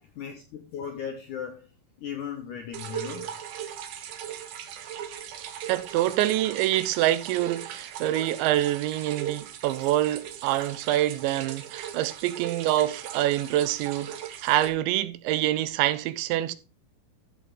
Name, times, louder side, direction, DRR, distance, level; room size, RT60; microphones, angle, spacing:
voice 1, 0.2-1.7 2.0-3.3, left 8 dB, 75° left, 1.9 m, -36 dB
sound 1, 2.7-14.7, right 10 dB, 70° right, 1.9 m, -38 dB
voice 2, 5.7-16.5, right 14 dB, 90° right, 3.1 m, -26 dB
14.5 x 7.0 x 3.6 m
omnidirectional pair, 5.1 m